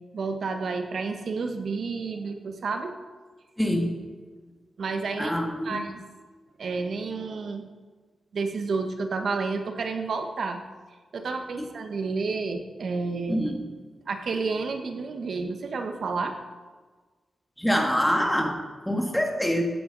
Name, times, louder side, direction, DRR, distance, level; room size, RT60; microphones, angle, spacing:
voice 1, 0.1-2.9 4.8-5.4 5.6-6.0 6.6-7.7 8.3-10.6 11.1-13.4 14.1-16.3, right 4 dB, 65° right, 5 dB, 1.2 m, -30 dB
voice 2, 3.6-3.9 5.2-5.8 11.6-11.7 13.3-13.6 17.6-19.6, equal, 5° left, 2 dB, 1.5 m, -25 dB
15.0 x 9.2 x 4.0 m, 1.4 s
wide cardioid pair, 130°, 0 cm